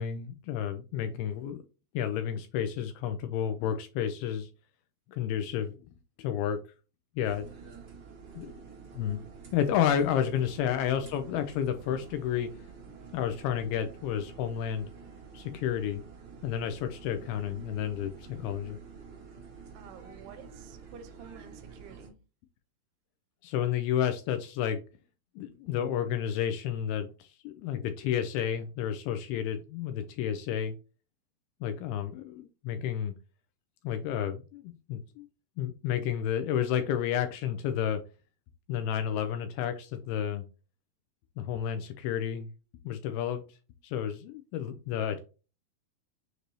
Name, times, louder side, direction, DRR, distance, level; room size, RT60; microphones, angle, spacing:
voice 1, 0.0-1.6 1.9-4.5 5.1-6.6 7.2-7.5 8.4-8.5 8.9-9.2 9.5-12.5 13.1-14.9 15.3-16.0 16.4-18.8 23.4-24.8 25.4-30.8 31.6-33.1 33.8-35.3 35.6-38.0 38.7-40.4 41.4-43.4 43.8-45.2, left 9 dB, 80° left, 2.3 m, -31 dB
sound 1, 7.2-22.1, right 5 dB, 60° right, 1.5 m, -49 dB
voice 2, 19.7-22.2, right 6 dB, 80° right, 2.6 m, -51 dB
6.7 x 2.6 x 3.0 m
omnidirectional pair, 4.8 m